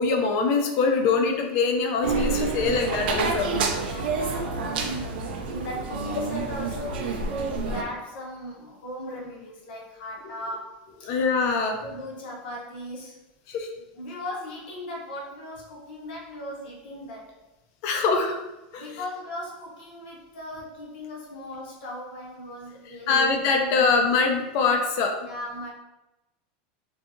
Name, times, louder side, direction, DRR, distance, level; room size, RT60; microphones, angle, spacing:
voice 1, 0.0-3.5 11.0-11.8 13.5-13.7 17.8-18.4 18.7-18.8 23.1-25.1, left 4 dB, 50° left, 3 dB, 0.5 m, -23 dB
sound 1, 2.0-7.8, right 4 dB, 90° right, 0.4 m, -28 dB
voice 2, 3.8-11.1 11.8-13.2 13.9-17.4 18.8-23.7 25.2-25.7, left 1 dB, 80° left, -3 dB, 0.8 m, -38 dB
2.7 x 2.3 x 2.6 m, 0.98 s
supercardioid pair, 145°, 5 cm